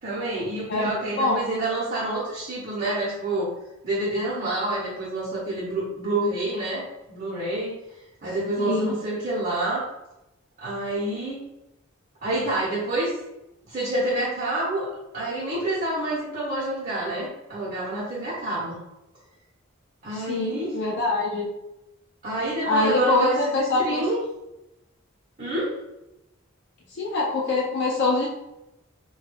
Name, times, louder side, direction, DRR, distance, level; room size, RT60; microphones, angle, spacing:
voice 1, 0.0-3.5 3.8-7.8 8.2-9.9 10.6-11.4 12.2-13.1 13.6-14.9 15.1-18.8 20.0-20.8 22.2-24.2 25.4-25.8, right 1 dB, 40° right, -7 dB, 0.7 m, -28 dB
voice 2, 0.7-1.4 8.6-8.9 20.1-21.5 22.6-24.0 26.9-28.3, left 2 dB, 60° left, -2 dB, 0.5 m, -24 dB
2.3 x 2.2 x 3.3 m, 0.90 s
head